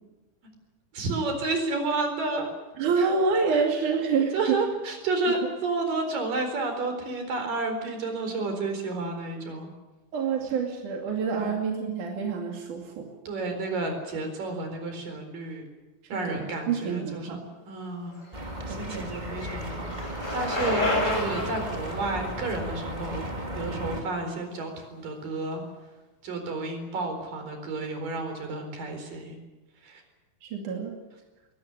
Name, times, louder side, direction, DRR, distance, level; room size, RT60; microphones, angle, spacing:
voice 1, 0.9-2.5 3.0-3.1 3.5-3.6 4.3-9.7 11.4-11.5 13.3-15.6 16.1-18.2 18.7-25.6 26.2-29.4 29.8-30.0, right 3 dB, 90° right, 5 dB, 5.9 m, -31 dB
voice 2, 2.8-4.3 10.1-13.1 16.1-17.4 18.6-19.1 30.4-30.9, right 5 dB, 70° right, 1 dB, 3.9 m, -27 dB
Bicycle, 18.2-24.2, left 1 dB, 20° left, 7.2 m, -31 dB
sound 1, 18.3-24.0, equal, 15° right, 2.5 m, -35 dB
22.0 x 19.0 x 10.0 m, 1.1 s
omnidirectional pair, 3.8 m